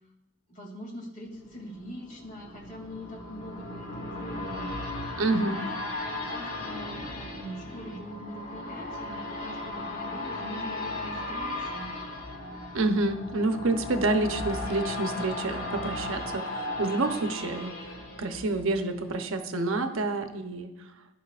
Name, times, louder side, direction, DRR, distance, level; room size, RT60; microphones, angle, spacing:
voice 1, 0.5-5.7 6.0-11.9, equal, 40° left, -1 dB, 2.8 m, -43 dB
sound 1, 1.4-19.2 19.6-19.7, left 2 dB, 85° left, 2.2 m, -36 dB
voice 2, 5.2-5.6 12.7-17.7 18.2-20.7, right 2 dB, 85° right, 6 dB, 0.9 m, -28 dB
15.0 x 11.0 x 2.5 m, 0.95 s
head